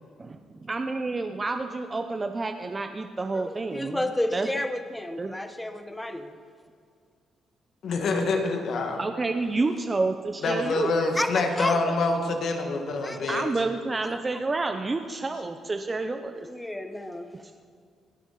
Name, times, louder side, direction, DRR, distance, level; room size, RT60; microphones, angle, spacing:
voice 1, 0.2-4.5 5.2-5.3 9.0-11.1 13.3-16.5 17.3-17.5, right 3 dB, 25° right, 7 dB, 0.5 m, -29 dB
voice 2, 3.3-6.3 10.4-10.6 11.2-11.9 13.0-13.4 14.0-14.1 16.4-17.3, left 1 dB, 10° left, 8 dB, 0.9 m, -31 dB
voice 3, 7.8-9.0 10.4-13.4, left 3 dB, 65° left, 3 dB, 1.5 m, -26 dB
17.5 x 8.3 x 4.0 m, 2.1 s
cardioid pair, 90°, 0 cm